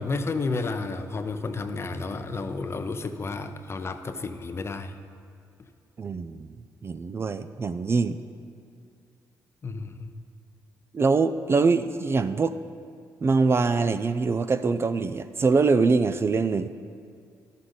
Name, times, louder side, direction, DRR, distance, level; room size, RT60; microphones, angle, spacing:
voice 1, 0.0-4.9 9.6-10.1, left 3 dB, 35° left, 8 dB, 0.6 m, -31 dB
voice 2, 6.0-6.5 6.8-8.2 10.9-12.6 13.2-16.7, right 4 dB, 35° right, 11 dB, 0.4 m, -23 dB
12.0 x 6.5 x 3.9 m, 2.3 s
cardioid pair, 75°, 7 cm